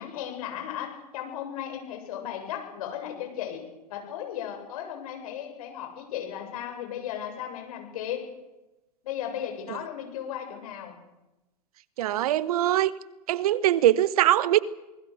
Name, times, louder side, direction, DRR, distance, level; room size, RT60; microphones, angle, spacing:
voice 1, 0.0-3.6 3.9-8.2 9.0-11.0, left 10 dB, 60° left, 7.5 m, -35 dB
voice 2, 12.0-12.9 13.3-14.6, right 13 dB, 65° right, 1.1 m, -22 dB
27.5 x 20.5 x 6.6 m
hypercardioid pair, 100°, 21 cm